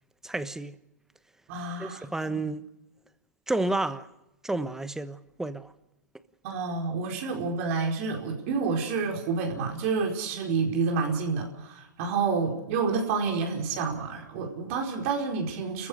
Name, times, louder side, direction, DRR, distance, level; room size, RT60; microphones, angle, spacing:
voice 1, 0.2-0.7 1.8-2.6 3.5-4.1 4.4-5.7, right 2 dB, 5° right, 1.2 m, -30 dB
voice 2, 1.5-2.1 6.4-15.9, right 4 dB, 50° right, 4.7 m, -29 dB
29.5 x 15.0 x 6.6 m
hypercardioid pair, 120°, 10 cm